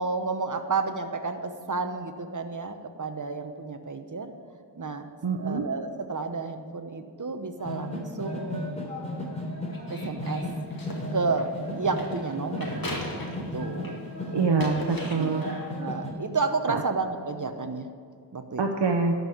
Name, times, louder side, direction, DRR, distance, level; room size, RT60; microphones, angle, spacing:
voice 1, 0.0-4.3 4.8-5.1 5.3-8.7 9.9-10.4 11.1-13.2 13.5-14.0 15.1-17.9 18.3-18.8, right 4 dB, 45° right, 7 dB, 1.0 m, -31 dB
voice 2, 5.2-5.6 14.3-15.4 16.7-16.8 18.6-19.1, right 4 dB, 80° right, 3 dB, 0.9 m, -25 dB
sound 1, 7.6-16.1, left 1 dB, 15° left, 3.3 m, -35 dB
sound 2, 9.7-14.1 14.4-15.7, left 1 dB, 55° left, 2.1 m, -39 dB
12.0 x 5.5 x 8.4 m, 2.2 s
wide cardioid pair, 50°, 42 cm